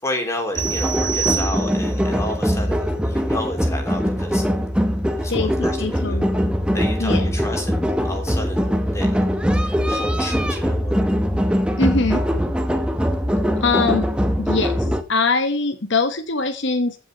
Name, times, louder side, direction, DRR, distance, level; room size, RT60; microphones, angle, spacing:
voice 1, 0.0-4.4 5.2-6.3 6.7-9.3 9.6-11.1, left 1 dB, 15° left, 3 dB, 3.2 m, -31 dB
sound 1, 0.5-15.0, equal, 5° right, 0.9 m, -22 dB
sound 2, 0.5-2.1, right 9 dB, 60° right, 0.9 m, -27 dB
voice 2, 5.3-6.3 7.0-7.2 11.8-12.2 13.6-14.1 14.4-17.0, left 3 dB, 55° left, 8 dB, 1.0 m, -22 dB
15.0 x 6.1 x 6.3 m, 0.33 s
head